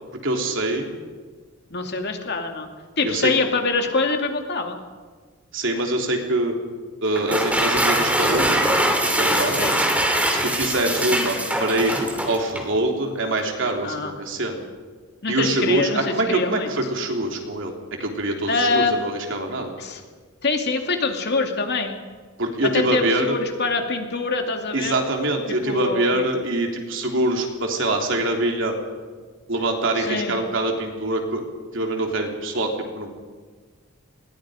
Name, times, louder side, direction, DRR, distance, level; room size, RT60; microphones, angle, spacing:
voice 1, 0.2-0.9 3.0-3.3 5.5-6.5 7.0-8.7 9.0-9.8 10.4-14.6 15.3-17.7 18.0-19.8 22.4-23.3 24.7-28.7 29.5-31.4 31.7-33.1, right 1 dB, 65° right, 2 dB, 3.5 m, -24 dB
voice 2, 1.7-2.7 3.0-4.8 9.5-9.8 13.8-14.1 15.2-16.7 18.5-18.9 19.8-20.0 20.4-21.9 22.6-25.0 25.5-26.2 30.0-30.3, left 3 dB, 55° left, 4 dB, 2.7 m, -24 dB
sound 1, 7.1-12.7, right 1 dB, 5° right, 2.8 m, -22 dB
27.5 x 21.0 x 5.1 m, 1.5 s
head